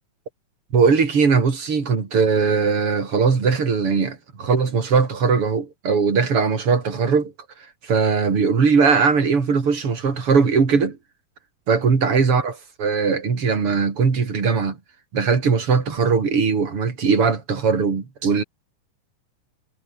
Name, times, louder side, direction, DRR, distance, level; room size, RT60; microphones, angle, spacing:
voice 1, 0.7-7.3 7.8-11.0 11.7-14.8 15.1-18.4, right 5 dB, 45° right, 4.1 m, -20 dB
omnidirectional pair, 3.7 m